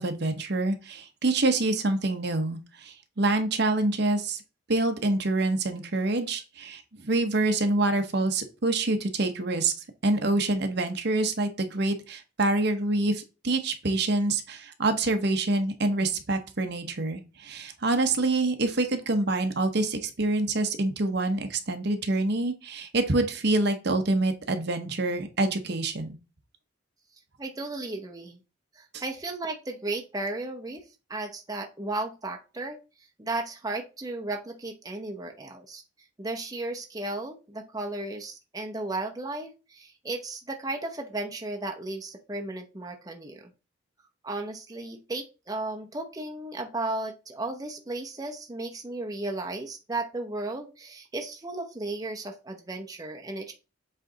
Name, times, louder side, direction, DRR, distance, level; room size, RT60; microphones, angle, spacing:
voice 1, 0.0-4.4 4.7-9.7 10.0-26.2 28.9-29.0, right 2 dB, 55° right, 7 dB, 0.9 m, -26 dB
voice 2, 27.4-28.4 28.8-30.8 31.1-32.8 33.2-35.8 36.2-43.5 44.2-53.5, right 2 dB, 20° right, 2 dB, 0.8 m, -34 dB
7.6 x 3.3 x 3.9 m, 0.31 s
head